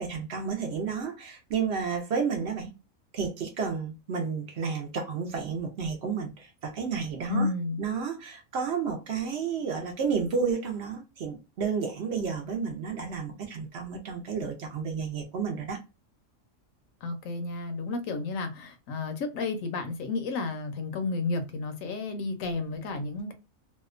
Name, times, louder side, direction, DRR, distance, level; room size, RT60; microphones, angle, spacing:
voice 1, 0.0-2.7 3.1-7.5 7.8-15.8, right 6 dB, 60° right, 0.7 m, -31 dB
voice 2, 7.3-7.8 17.0-23.3, left 3 dB, 75° left, 1.0 m, -32 dB
2.7 x 2.2 x 2.3 m
omnidirectional pair, 1.4 m